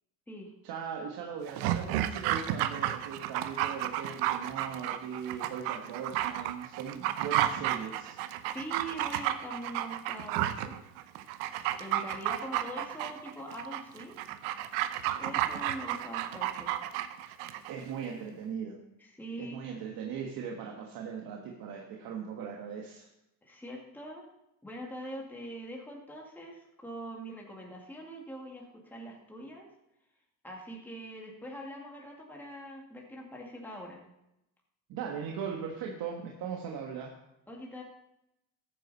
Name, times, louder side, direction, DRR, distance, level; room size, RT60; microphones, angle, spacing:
voice 1, 0.6-8.6 17.7-18.8 19.4-23.1 34.9-37.1, right 7 dB, 55° right, 1 dB, 1.7 m, -39 dB
Dog, 1.5-17.7 18.0-18.1, right 12 dB, 85° right, 0.9 m, -32 dB
voice 2, 8.5-10.8 11.8-14.2 15.2-16.8 19.0-19.6 23.4-24.3 24.6-29.7 30.4-34.0 37.5-37.8, equal, 5° left, -1 dB, 2.1 m, -43 dB
14.5 x 9.2 x 4.2 m, 0.86 s
cardioid pair, 115°, 41 cm